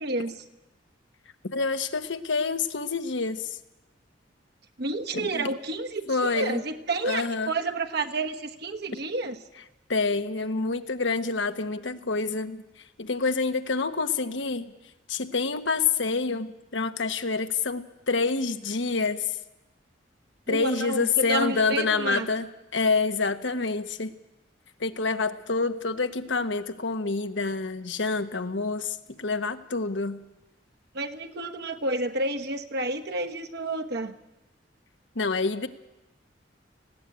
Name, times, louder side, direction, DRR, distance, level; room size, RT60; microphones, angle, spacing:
voice 1, 0.0-0.3 4.8-9.4 20.5-22.3 30.9-34.1, right 2 dB, 60° right, 6 dB, 1.3 m, -30 dB
voice 2, 1.5-3.6 5.1-5.5 6.1-6.6 7.0-7.5 9.9-14.7 15.1-19.4 20.5-22.5 22.7-24.1 24.8-30.2 35.1-35.7, left 4 dB, 85° left, 9 dB, 1.2 m, -27 dB
19.0 x 16.0 x 8.9 m, 0.99 s
head